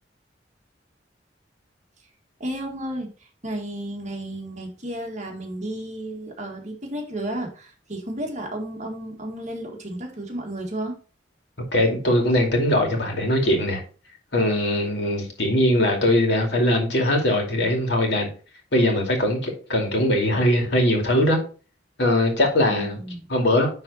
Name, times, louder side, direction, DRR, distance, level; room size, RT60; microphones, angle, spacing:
voice 1, 2.4-3.1 3.4-11.0 22.7-23.3, right 1 dB, 40° right, 1.8 m, -32 dB
voice 2, 11.7-13.8 14.3-18.3 18.7-21.4 22.0-23.0 23.3-23.8, left 1 dB, 65° left, 2.5 m, -21 dB
10.5 x 3.8 x 4.1 m
head